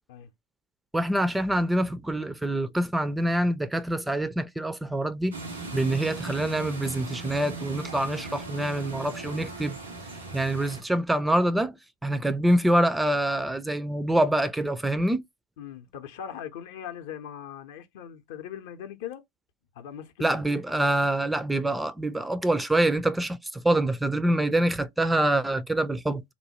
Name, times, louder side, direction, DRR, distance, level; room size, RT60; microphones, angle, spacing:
voice 1, 0.9-5.3 5.7-9.8 10.3-15.2 20.2-26.2, right 1 dB, 10° right, 0.3 m, -25 dB
sound 1, 5.3-10.8, right 2 dB, 90° right, 1.4 m, -38 dB
voice 2, 15.6-19.2 19.7-20.6, left 9 dB, 65° left, 0.6 m, -40 dB
3.0 x 2.1 x 2.9 m
hypercardioid pair, 80°, 0 cm